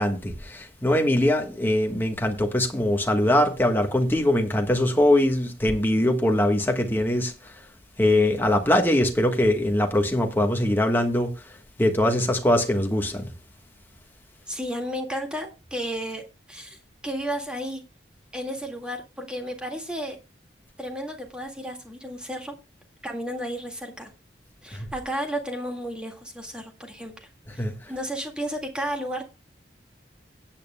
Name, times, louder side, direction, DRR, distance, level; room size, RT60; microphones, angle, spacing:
voice 1, 0.0-7.5 8.0-11.3 11.8-13.3 24.7-24.9 27.6-27.7, left 1 dB, 10° left, 1.3 m, -22 dB
voice 2, 14.5-16.2 16.5-16.8 17.0-17.8 18.3-20.2 20.8-22.5 23.0-24.1 24.6-29.3, equal, 5° right, 1.8 m, -33 dB
18.0 x 8.9 x 2.2 m
head